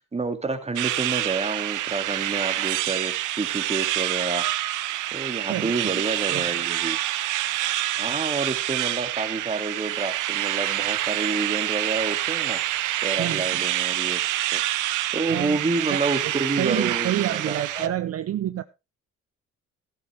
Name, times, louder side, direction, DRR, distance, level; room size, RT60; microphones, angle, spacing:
voice 1, 0.1-4.4 5.1-7.0 8.0-12.6 13.0-14.2 14.5-14.6 15.1-17.9, right 3 dB, 20° right, 2.1 m, -29 dB
sound 1, 0.8-17.9, right 14 dB, 85° right, 0.8 m, -27 dB
voice 2, 5.5-6.0 6.3-6.5 13.2-13.6 15.3-18.6, right 12 dB, 50° right, 0.6 m, -29 dB
14.0 x 12.5 x 3.2 m
cardioid pair, 90°, 30 cm